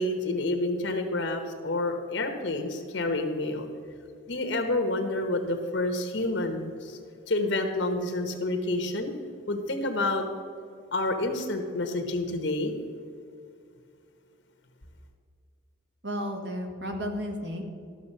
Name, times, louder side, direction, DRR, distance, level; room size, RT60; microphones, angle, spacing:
voice 1, 0.0-3.7 4.3-7.0 7.3-9.1 9.5-10.3 10.9-12.7, left 2 dB, 70° left, 5 dB, 1.1 m, -29 dB
voice 2, 16.0-17.6, equal, 60° right, 3 dB, 1.5 m, -33 dB
12.5 x 6.7 x 5.5 m, 2.4 s
head